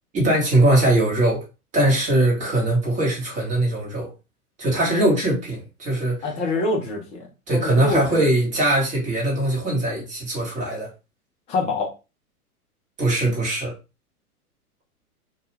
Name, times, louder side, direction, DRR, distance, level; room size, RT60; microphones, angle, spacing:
voice 1, 0.1-1.4 1.7-4.1 4.6-6.2 7.5-10.9 13.0-13.7, right 1 dB, 15° right, 1.1 m, -21 dB
voice 2, 6.2-7.2 7.5-8.3 11.5-11.9, left 2 dB, 15° left, 0.5 m, -25 dB
2.3 x 2.2 x 3.1 m
hypercardioid pair, 115°, 46 cm